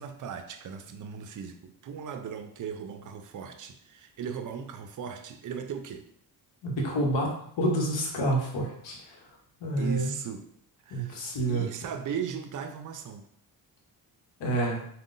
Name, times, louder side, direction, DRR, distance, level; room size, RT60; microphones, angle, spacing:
voice 1, 0.0-6.1 9.8-10.5 10.8-11.2 11.5-13.3, right 7 dB, 45° right, 8 dB, 0.5 m, -37 dB
voice 2, 6.6-9.3 9.6-10.1 10.9-11.7 14.4-14.8, right 1 dB, 75° left, 0 dB, 1.0 m, -28 dB
3.6 x 2.2 x 2.5 m, 0.68 s
cardioid pair, 60°, 45 cm